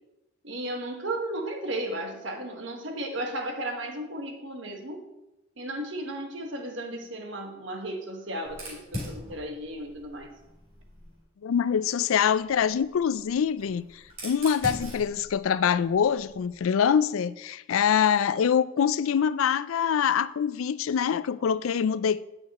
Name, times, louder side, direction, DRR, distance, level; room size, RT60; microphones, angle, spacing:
voice 1, 0.4-5.0 5.6-10.4, right 1 dB, 65° right, 1.3 m, -34 dB
Fire, 8.5-11.2 12.4-16.6, equal, 30° right, 3.4 m, -42 dB
voice 2, 11.4-22.2, left 7 dB, 80° left, 0.3 m, -25 dB
8.6 x 6.7 x 4.2 m
head